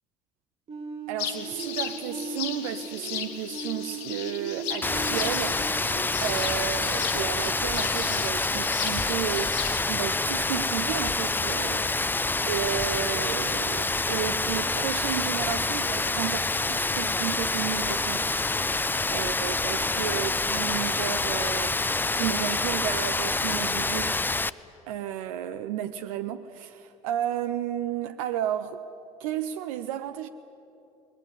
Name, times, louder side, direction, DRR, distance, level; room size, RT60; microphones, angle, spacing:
sound 1, 0.7-7.4, right 3 dB, 35° right, 4.2 m, -39 dB
voice 1, 1.1-5.6 6.2-9.6 9.9-18.4 19.1-24.2 24.9-28.8 29.2-30.3, right 11 dB, 70° right, 0.7 m, -33 dB
sound 2, 1.2-9.8, left 9 dB, 60° left, 1.6 m, -36 dB
Rain, 4.8-24.5, left 3 dB, 10° left, 0.5 m, -27 dB
21.0 x 21.0 x 9.9 m
figure-of-eight pair, 55°, 18 cm